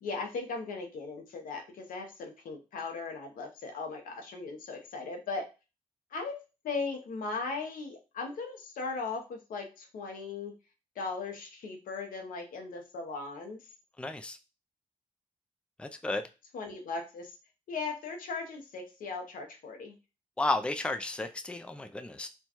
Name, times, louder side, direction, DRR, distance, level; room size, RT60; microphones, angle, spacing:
voice 1, 0.0-5.5 6.1-6.4 6.6-10.5 11.0-13.6 16.5-17.4 17.7-20.0, left 4 dB, 90° left, 0.8 m, -38 dB
voice 2, 14.0-14.4 15.8-16.2 20.4-22.3, left 2 dB, 5° left, 0.4 m, -33 dB
4.4 x 2.3 x 2.9 m
cardioid pair, 65°, 14 cm